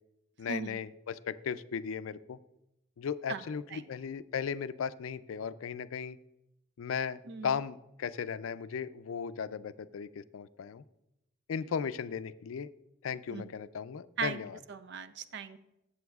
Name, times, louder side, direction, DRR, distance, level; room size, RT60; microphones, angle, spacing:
voice 1, 0.4-2.4 3.0-6.2 6.8-10.8 11.5-12.7 13.0-14.6, left 7 dB, 80° left, 15 dB, 0.4 m, -36 dB
voice 2, 14.7-15.6, right 5 dB, 55° right, 12 dB, 0.5 m, -37 dB
14.0 x 7.8 x 2.3 m, 0.88 s
head